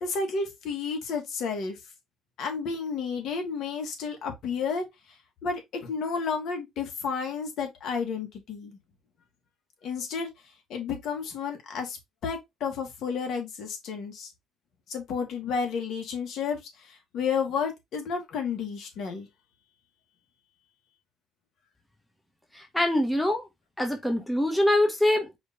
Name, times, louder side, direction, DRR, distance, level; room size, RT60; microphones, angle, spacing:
voice 1, 0.0-1.8 2.4-4.8 5.4-8.8 9.8-10.3 10.7-12.0 12.2-14.3 14.9-19.3, left 5 dB, 60° left, 1.6 m, -31 dB
voice 2, 22.5-23.4 23.8-25.3, left 1 dB, 5° left, 0.8 m, -24 dB
4.9 x 2.7 x 3.3 m
cardioid pair, 140°, 0 cm